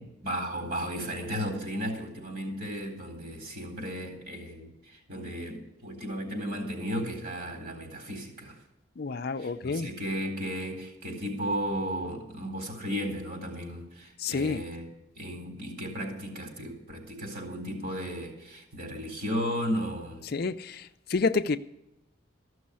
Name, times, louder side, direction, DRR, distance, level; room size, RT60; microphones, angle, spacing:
voice 1, 0.0-8.6 9.4-14.9 15.2-20.3, equal, 45° right, 4.0 m, -35 dB
voice 2, 9.0-9.9 14.2-14.6 20.2-21.6, left 4 dB, 50° left, 0.5 m, -29 dB
14.5 x 6.2 x 9.8 m
head